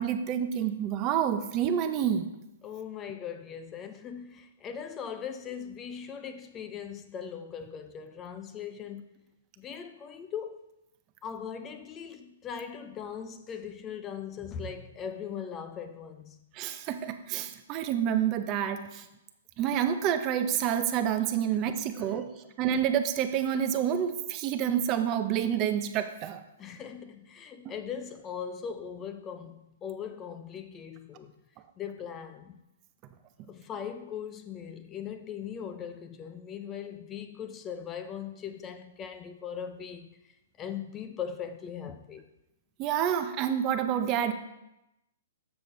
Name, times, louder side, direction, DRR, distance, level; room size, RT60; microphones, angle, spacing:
voice 1, 0.0-2.3 16.5-19.0 19.6-22.3 22.6-26.4 27.6-27.7 33.4-33.5 42.8-44.3, right 9 dB, 30° right, 0.7 m, -28 dB
voice 2, 2.6-9.1 9.6-10.7 11.2-16.4 21.5-21.6 21.9-22.2 26.6-31.3 31.8-32.6 33.5-40.2 40.6-42.3, left 7 dB, 20° left, 0.6 m, -40 dB
6.9 x 6.9 x 3.9 m
hypercardioid pair, 140°, 0 cm